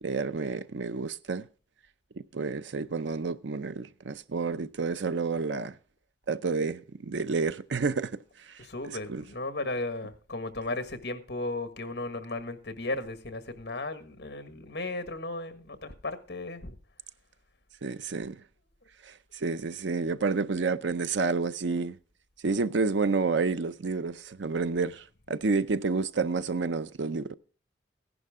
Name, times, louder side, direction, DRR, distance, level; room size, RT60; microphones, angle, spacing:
voice 1, 0.0-1.5 2.2-5.7 6.3-8.2 9.1-9.2 17.8-18.4 19.0-22.0 22.4-27.3, right 4 dB, 75° right, 0.6 m, -29 dB
voice 2, 8.6-16.8, left 2 dB, 60° left, 1.6 m, -35 dB
15.5 x 11.0 x 3.6 m
head